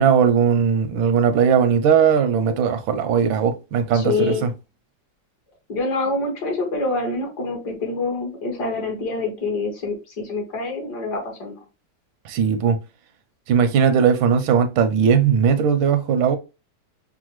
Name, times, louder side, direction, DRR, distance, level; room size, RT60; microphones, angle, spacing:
voice 1, 0.0-4.5 12.2-12.8 13.5-16.4, right 7 dB, 85° right, 1.4 m, -18 dB
voice 2, 3.9-4.5 5.7-11.6, left 3 dB, 60° left, 1.8 m, -26 dB
6.1 x 2.1 x 3.0 m
omnidirectional pair, 2.1 m